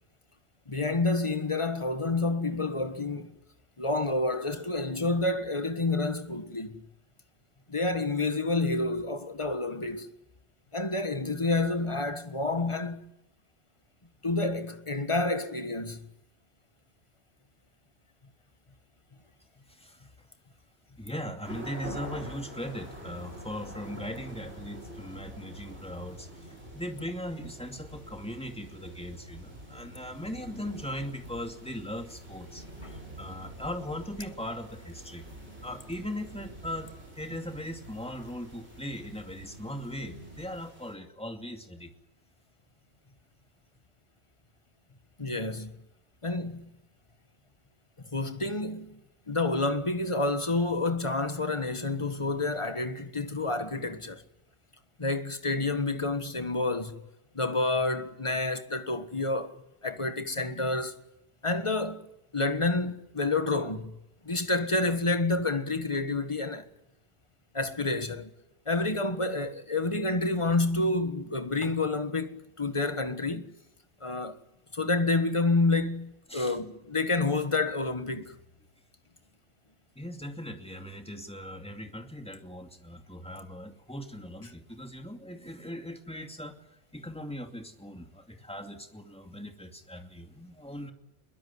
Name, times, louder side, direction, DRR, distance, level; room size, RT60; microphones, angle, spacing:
voice 1, 0.7-3.3 3.8-6.8 7.7-10.1 10.7-13.1 14.2-16.1 32.8-32.9 45.2-45.7 46.2-46.7 48.1-49.0 49.3-54.2 55.0-57.0 57.3-61.0 61.4-62.1 62.3-63.9 64.2-66.7 67.5-68.3 68.6-73.5 74.0-74.4 74.7-78.4, left 2 dB, 25° left, 1.6 m, -29 dB
voice 2, 19.7-20.1 21.0-26.5 26.7-35.2 35.6-41.9 76.3-76.6 80.0-86.6 86.9-90.9, equal, 5° left, 2.4 m, -39 dB
sound 1, 21.4-40.9, right 1 dB, 65° right, 8.5 m, -47 dB
sound 2, 23.1-40.6, right 1 dB, 85° right, 5.5 m, -51 dB
22.5 x 22.0 x 9.8 m
omnidirectional pair, 1.2 m